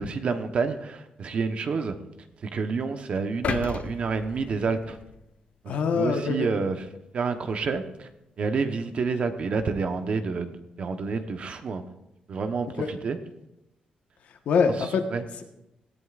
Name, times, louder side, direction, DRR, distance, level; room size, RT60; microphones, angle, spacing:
voice 1, 0.0-1.9 2.4-5.0 5.6-6.8 7.1-8.1 8.4-11.8 12.3-13.2 14.8-15.2, right 4 dB, 50° right, 7 dB, 1.1 m, -29 dB
sound 1, 3.4-5.6 6.1-6.2, left 7 dB, 60° left, 0.5 m, -35 dB
voice 2, 5.7-6.5 12.8-12.9 14.5-15.0, left 5 dB, 75° left, 5 dB, 1.3 m, -24 dB
17.5 x 14.5 x 2.5 m, 0.91 s
wide cardioid pair, 135°, 3 cm